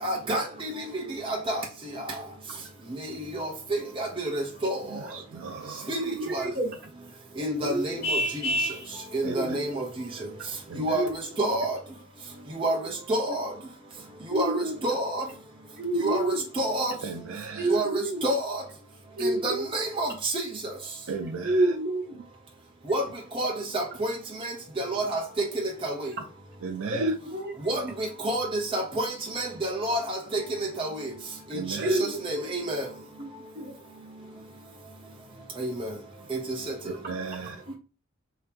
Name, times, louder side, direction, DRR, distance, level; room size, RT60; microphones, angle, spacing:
voice 1, 0.0-1.6 2.0-2.2 3.0-4.8 5.9-6.0 6.3-6.5 7.4-8.5 9.1-9.8 10.8-11.0 11.4-11.8 12.5-13.5 14.3-15.2 16.0-16.9 17.7-18.6 19.2-20.5 22.9-23.1 23.3-26.1 27.6-31.1 31.5-31.6 31.9-32.9 35.6-35.9 36.3-36.7, right 1 dB, 25° right, 0.7 m, -29 dB
voice 2, 4.9-6.0 9.2-9.6 10.7-11.0 17.0-17.8 21.1-21.7 26.6-27.1 31.5-32.0 36.8-37.6, right 5 dB, 70° right, 0.4 m, -36 dB
voice 3, 5.9-6.7 7.4-7.9 9.2-9.6 10.9-11.1 14.3-14.7 15.8-16.4 17.6-18.2 19.2-19.7 21.4-22.2 26.9-27.9 31.8-32.1 33.2-33.3 33.5-33.7, right 1 dB, 45° right, 1.1 m, -28 dB
Vehicle horn car horn honking, 8.0-8.9, equal, 35° left, 1.3 m, -27 dB
2.8 x 2.7 x 3.5 m
head